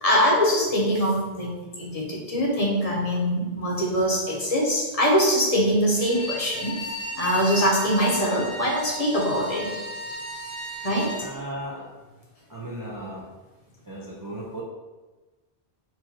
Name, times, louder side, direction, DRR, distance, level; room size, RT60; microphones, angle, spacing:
voice 1, 0.0-6.7 7.2-9.7 10.8-11.1, equal, 40° left, -4 dB, 1.0 m, -23 dB
Bowed string instrument, 5.9-11.3, equal, 75° left, 1.4 m, -35 dB
voice 2, 11.2-11.9 12.5-13.3 13.9-14.6, right 1 dB, 25° right, -4 dB, 0.5 m, -36 dB
4.6 x 2.5 x 4.3 m, 1.2 s
omnidirectional pair, 1.0 m